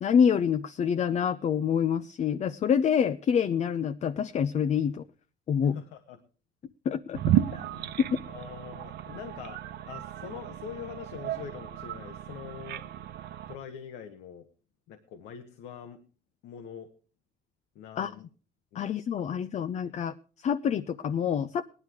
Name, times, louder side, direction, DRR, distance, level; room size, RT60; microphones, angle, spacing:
voice 1, 0.0-5.0 5.5-5.8 6.9-7.2 18.0-18.1 18.7-21.6, left 7 dB, 40° left, 11 dB, 0.6 m, -26 dB
voice 2, 5.6-6.2 7.5-8.0 8.3-12.9 13.4-14.5 14.9-16.0 16.4-16.9 17.7-18.3 18.7-18.9 19.2-19.9, left 8 dB, 85° left, 7 dB, 1.3 m, -44 dB
sound 1, 7.1-13.5, right 11 dB, 75° right, 0.8 m, -33 dB
17.0 x 11.0 x 4.7 m, 0.40 s
cardioid pair, 110°, 17 cm